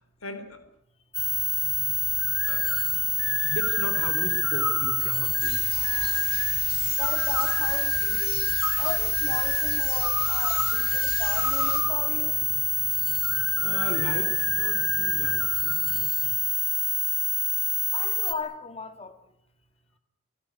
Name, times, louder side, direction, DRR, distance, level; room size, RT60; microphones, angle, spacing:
voice 1, 0.2-0.6 2.5-3.0 3.4-5.7 13.6-16.5, left 1 dB, 90° left, 3.7 m, -36 dB
sound 1, 1.1-18.3, left 2 dB, ahead, 2.2 m, -26 dB
sound 2, 1.2-15.7, left 3 dB, 70° left, 5.3 m, -33 dB
sound 3, 5.4-11.8, left 3 dB, 45° left, 6.5 m, -39 dB
voice 2, 5.7-6.3 6.9-8.5 8.8-12.5 17.9-19.2, left 3 dB, 30° left, 2.1 m, -36 dB
25.5 x 16.5 x 9.9 m
head